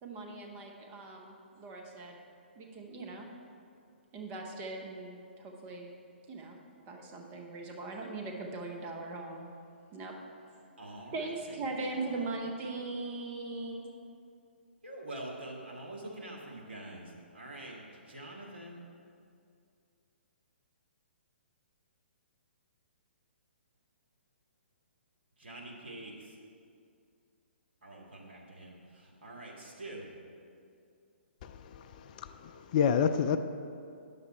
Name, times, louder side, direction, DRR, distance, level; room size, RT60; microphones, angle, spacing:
voice 1, 0.0-2.2 2.5-3.3 4.1-5.9 6.3-6.6 6.9-9.5 9.9-10.2 10.5-10.6 11.1-13.9, right 3 dB, 25° right, 1 dB, 1.0 m, -40 dB
voice 2, 10.8-12.3 14.8-18.8 25.4-26.4 27.8-30.1, right 1 dB, 65° right, -2 dB, 1.9 m, -46 dB
voice 3, 31.4-33.4, left 7 dB, 40° left, 10 dB, 0.4 m, -29 dB
9.6 x 6.8 x 4.1 m, 2.4 s
figure-of-eight pair, 125°, 6 cm